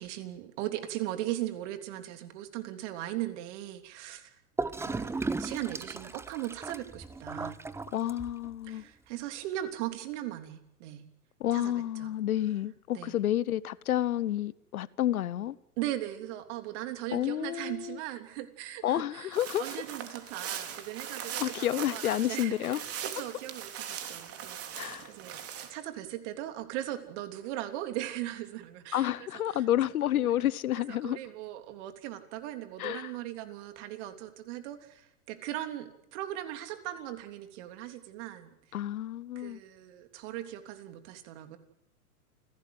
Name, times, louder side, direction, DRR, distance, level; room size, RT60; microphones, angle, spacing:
voice 1, 0.0-4.3 4.8-5.1 5.4-7.6 8.7-11.0 11.5-11.7 12.0-12.1 12.9-13.1 15.8-29.1 29.5-29.6 31.0-38.5 39.3-41.6, right 14 dB, 50° right, 3.3 m, -38 dB
Gurgling / Toilet flush, 4.6-8.6, right 3 dB, 5° right, 0.8 m, -36 dB
voice 2, 7.9-8.8 11.4-15.6 17.1-18.0 18.8-19.6 21.4-22.8 24.7-25.1 28.9-31.2 32.8-33.1 38.7-39.6, left 12 dB, 70° left, 1.1 m, -30 dB
sound 1, 19.3-25.7, right 9 dB, 30° right, 3.4 m, -40 dB
29.0 x 16.5 x 7.9 m
hypercardioid pair, 105°, 45 cm